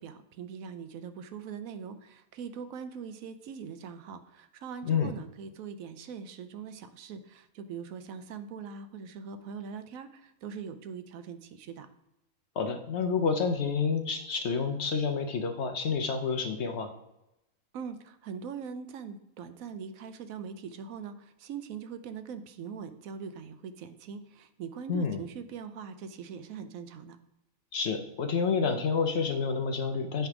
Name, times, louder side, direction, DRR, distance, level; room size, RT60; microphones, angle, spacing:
voice 1, 0.0-11.9 17.7-27.2, right 6 dB, 80° right, 10 dB, 1.0 m, -42 dB
voice 2, 12.6-16.9 24.9-25.2 27.7-30.3, left 5 dB, 60° left, 6 dB, 0.9 m, -29 dB
9.2 x 3.5 x 4.7 m, 0.89 s
omnidirectional pair, 1.5 m